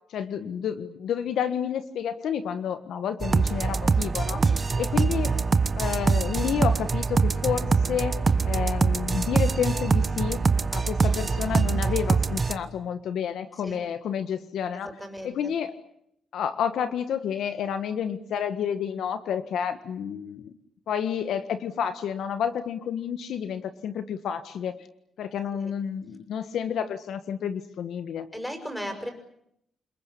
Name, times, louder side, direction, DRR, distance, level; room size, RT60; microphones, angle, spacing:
voice 1, 0.1-4.4 4.8-5.3 5.7-8.1 8.4-10.4 10.7-15.0 15.2-15.7 16.3-20.5 20.9-24.9 25.2-28.3, left 8 dB, 80° left, 10 dB, 1.5 m, -30 dB
sound 1, 3.2-12.5, right 4 dB, 30° right, 1.2 m, -24 dB
voice 2, 15.0-15.3 28.3-29.1, equal, 5° left, 7 dB, 6.0 m, -35 dB
28.5 x 21.0 x 8.5 m, 0.75 s
cardioid pair, 110°, 0 cm